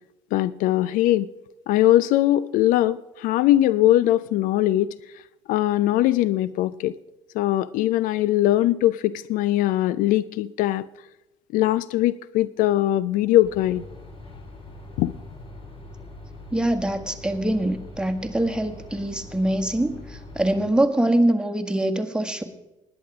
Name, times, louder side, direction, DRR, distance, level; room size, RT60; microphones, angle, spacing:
voice 1, 0.3-1.3 1.7-4.9 5.5-7.0 7.3-10.9 11.5-13.8 15.0-15.1, left 14 dB, 60° left, 19 dB, 0.4 m, -21 dB
sound 1, 13.4-20.6, left 2 dB, 35° left, 3.0 m, -42 dB
voice 2, 16.5-22.4, right 1 dB, 5° right, 5 dB, 1.6 m, -24 dB
19.5 x 8.7 x 4.9 m, 0.97 s
figure-of-eight pair, 50°, 16 cm